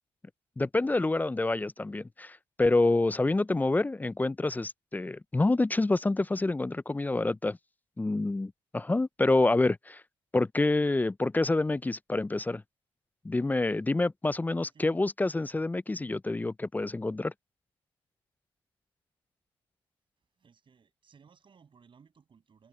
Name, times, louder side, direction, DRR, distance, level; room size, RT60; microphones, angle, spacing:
voice 1, 0.6-7.6 8.0-10.0 10.3-12.6 13.2-17.3, left 2 dB, 15° left, 0.4 m, -27 dB
voice 2, 14.6-15.0 15.9-16.2 20.4-22.7, right 6 dB, 50° right, 6.6 m, -59 dB
supercardioid pair, 60°, 11 cm